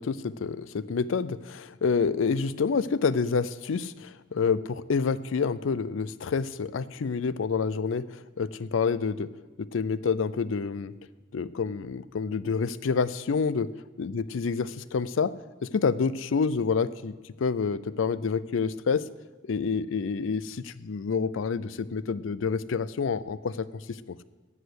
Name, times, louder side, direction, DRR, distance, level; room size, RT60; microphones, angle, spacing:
voice 1, 0.0-9.3 9.6-10.9 11.3-13.7 14.0-15.3 15.6-19.0 19.5-24.2, left 5 dB, 85° left, 17 dB, 0.4 m, -28 dB
14.0 x 5.0 x 8.1 m, 1.3 s
head